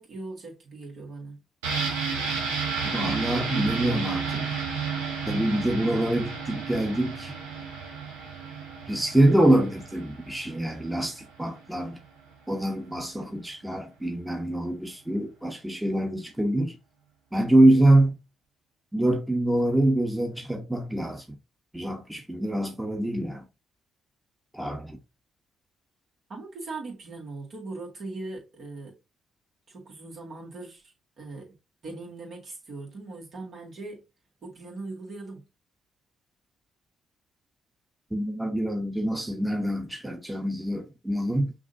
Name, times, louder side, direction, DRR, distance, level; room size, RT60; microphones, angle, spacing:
voice 1, 0.0-1.4 1.8-2.2 26.3-28.9 29.7-30.8 31.2-31.5 31.8-34.0 34.4-35.4, right 3 dB, 55° right, 2.0 m, -40 dB
sound 1, 1.6-11.3 11.6-11.7, right 5 dB, 90° right, 1.0 m, -32 dB
voice 2, 2.8-4.5 5.3-7.3 8.9-12.0 12.5-16.8 17.3-18.2 18.9-21.2 21.7-23.5 24.5-25.0 38.1-41.5, right 1 dB, 5° right, 1.0 m, -25 dB
5.9 x 2.7 x 2.7 m
hypercardioid pair, 50°, 0 cm